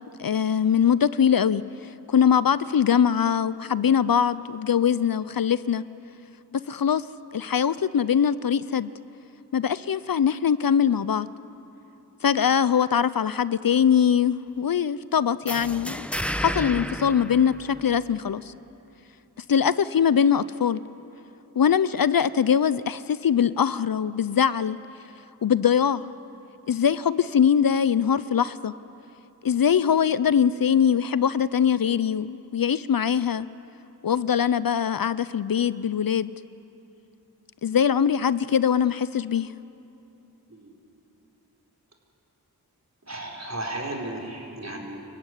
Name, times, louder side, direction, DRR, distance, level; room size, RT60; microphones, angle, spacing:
voice 1, 0.2-1.6 2.1-5.8 6.5-7.0 7.3-8.9 9.5-11.3 12.2-16.1 16.4-18.5 19.5-20.8 21.6-24.8 25.4-26.1 26.7-28.7 29.4-33.5 34.0-36.3 37.6-39.5, left 8 dB, 60° left, 16 dB, 0.6 m, -22 dB
sound 1, 15.5-18.2, equal, 5° left, 1.0 m, -32 dB
voice 2, 43.1-45.0, right 1 dB, 40° right, 0 dB, 4.6 m, -34 dB
27.0 x 14.5 x 9.8 m, 2.9 s
wide cardioid pair, 45°, 39 cm